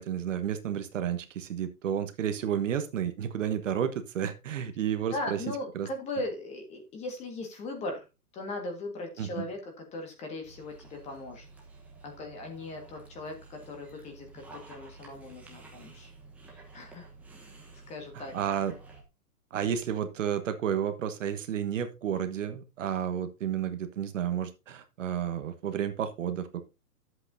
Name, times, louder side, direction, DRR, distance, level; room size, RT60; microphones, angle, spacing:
voice 1, 0.0-5.4 5.7-5.9 9.2-9.5 18.1-18.7 19.5-26.7, right 9 dB, 50° right, 9 dB, 1.2 m, -31 dB
voice 2, 5.1-8.1 8.3-11.4 12.0-16.1 16.7-17.1 17.9-18.3, left 2 dB, 15° left, 4 dB, 1.5 m, -38 dB
Dog, 10.4-19.0, right 3 dB, 5° right, 1.0 m, -51 dB
11.5 x 8.0 x 2.7 m, 0.26 s
hypercardioid pair, 155°, 47 cm